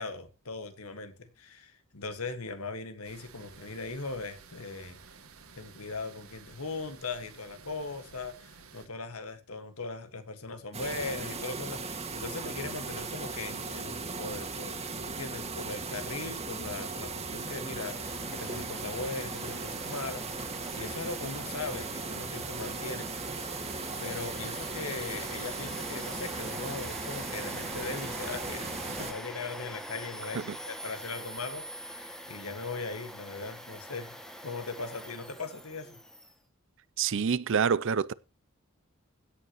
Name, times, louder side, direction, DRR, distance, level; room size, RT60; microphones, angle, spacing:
voice 1, 0.0-5.0 5.6-23.1 24.0-36.0, left 3 dB, 80° left, 1.7 m, -39 dB
sound 1, 3.0-8.9, right 5 dB, 75° right, 2.0 m, -53 dB
sound 2, 10.7-29.1, right 4 dB, 30° right, 1.9 m, -37 dB
Domestic sounds home sounds, 17.5-36.3, equal, 5° left, 1.4 m, -44 dB
voice 2, 37.0-38.1, right 6 dB, 60° right, 0.5 m, -27 dB
16.5 x 8.4 x 3.0 m
head